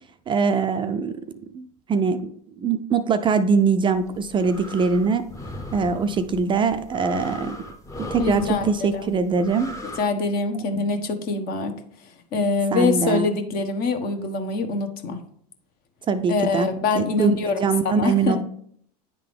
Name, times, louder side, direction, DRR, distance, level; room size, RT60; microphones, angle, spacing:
voice 1, 0.3-1.2 1.5-2.3 2.6-5.3 5.7-7.6 8.1-9.7 12.7-13.3 16.1-16.7 17.0-18.4, right 5 dB, 25° right, 9 dB, 0.4 m, -22 dB
sound 1, 4.0-10.0, equal, 15° left, 0.8 m, -38 dB
voice 2, 8.2-9.1 10.0-11.7 12.3-15.2 16.3-17.6 17.8-18.4, left 4 dB, 50° left, 7 dB, 1.1 m, -24 dB
9.6 x 3.7 x 3.4 m, 0.64 s
hypercardioid pair, 100°, 20 cm